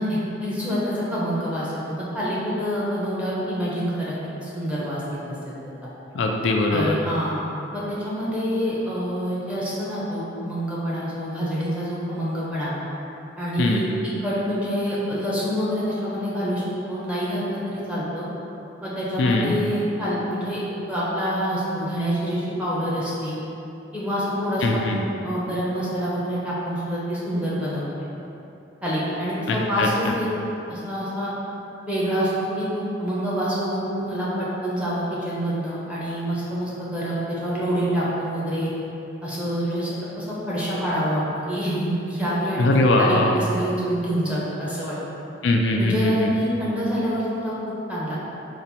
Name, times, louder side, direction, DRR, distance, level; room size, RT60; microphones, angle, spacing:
voice 1, 0.0-5.0 5.4-5.5 6.7-7.3 7.7-12.7 13.4-13.8 14.2-18.3 18.8-23.4 23.9-28.1 28.8-30.3 30.7-31.3 31.9-38.7 39.2-41.2 41.5-42.7 43.0-45.0 45.8-47.5 47.9-48.2, equal, 5° right, -8 dB, 0.9 m, -26 dB
voice 2, 6.2-6.9 13.6-13.8 19.2-19.5 24.6-25.0 29.5-29.9 42.6-43.3 45.4-46.3, left 2 dB, 70° left, 1 dB, 0.4 m, -21 dB
4.2 x 2.6 x 4.1 m, 2.9 s
head